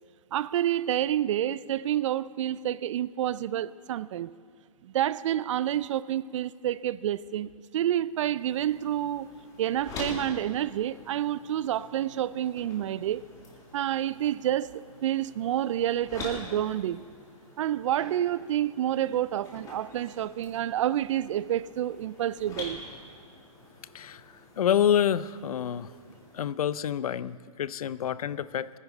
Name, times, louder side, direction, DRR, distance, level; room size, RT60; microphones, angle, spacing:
voice 1, 0.3-4.3 4.8-9.3 9.6-13.2 13.7-17.0 17.6-22.8, right 11 dB, 55° right, 0.4 m, -29 dB
sound 1, 8.4-26.5, left 2 dB, 20° left, 2.1 m, -46 dB
voice 2, 23.9-25.9 26.3-28.7, left 9 dB, 80° left, 0.5 m, -28 dB
19.0 x 9.9 x 4.0 m
hypercardioid pair, 140°, 18 cm